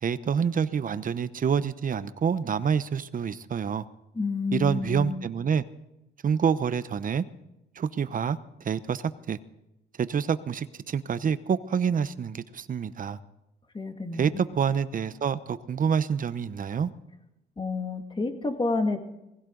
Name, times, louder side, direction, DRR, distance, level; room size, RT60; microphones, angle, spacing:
voice 1, 0.0-3.8 4.5-5.6 6.2-7.2 7.8-8.4 8.6-9.4 10.0-13.2 14.1-16.9, right 7 dB, 45° right, 14 dB, 1.0 m, -27 dB
voice 2, 4.2-5.2 13.7-14.4 17.6-19.0, left 3 dB, 25° left, 5 dB, 2.3 m, -29 dB
20.0 x 16.5 x 4.0 m, 0.90 s
cardioid pair, 90°, 20 cm